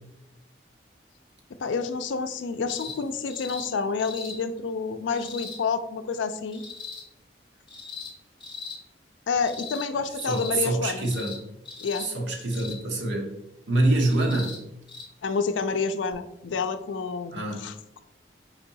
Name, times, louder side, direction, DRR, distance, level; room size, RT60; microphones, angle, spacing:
voice 1, 1.6-6.6 9.3-11.1 11.8-12.1 15.2-17.7, left 4 dB, 85° left, 10 dB, 0.4 m, -29 dB
sound 1, 2.7-3.0 3.3-3.7 4.0-4.4 5.1-5.6 6.5-7.0 7.7-8.1 8.4-8.8 9.4-9.9 10.2-10.5 11.0-11.4 11.7-12.1 12.5-12.8 14.1-14.6 14.9-15.0 16.1-16.2, left 5 dB, 25° left, 1.0 m, -39 dB
voice 2, 10.2-11.3 12.0-13.4 13.7-14.6 17.3-17.7, right 2 dB, 80° right, 1 dB, 1.0 m, -25 dB
4.4 x 2.7 x 3.9 m, 0.84 s
head